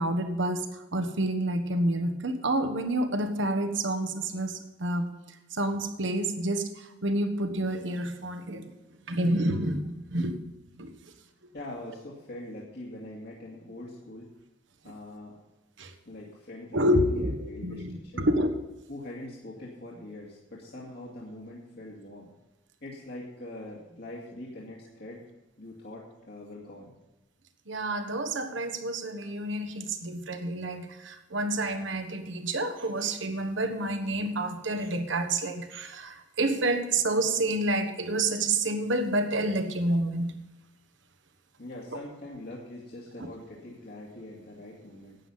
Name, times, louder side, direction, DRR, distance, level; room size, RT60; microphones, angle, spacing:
voice 1, 0.0-5.1 5.5-8.7 9.1-10.5 10.8-11.1 15.8-15.9 16.7-18.6 27.7-40.3 43.2-43.3, right 1 dB, 65° right, 8 dB, 1.4 m, -29 dB
voice 2, 11.5-14.3 14.8-15.4 16.1-18.3 18.9-22.3 22.8-25.2 25.6-26.9 41.6-45.2, left 1 dB, 55° left, -4 dB, 2.3 m, -43 dB
12.0 x 9.5 x 5.7 m, 1.0 s
head